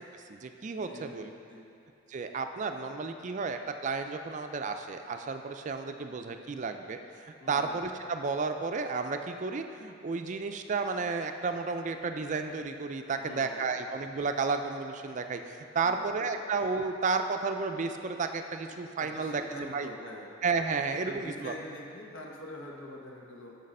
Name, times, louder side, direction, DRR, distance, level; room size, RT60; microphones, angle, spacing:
voice 1, 0.3-1.3 2.1-7.0 7.5-19.9 20.4-21.5, right 4 dB, 40° right, 6 dB, 0.4 m, -32 dB
voice 2, 0.8-1.2 1.5-1.7 7.4-7.8 13.2-13.7 15.8-16.4 18.7-20.3 20.9-23.6, left 1 dB, 80° left, -1 dB, 1.1 m, -45 dB
6.6 x 6.4 x 5.4 m, 2.7 s
head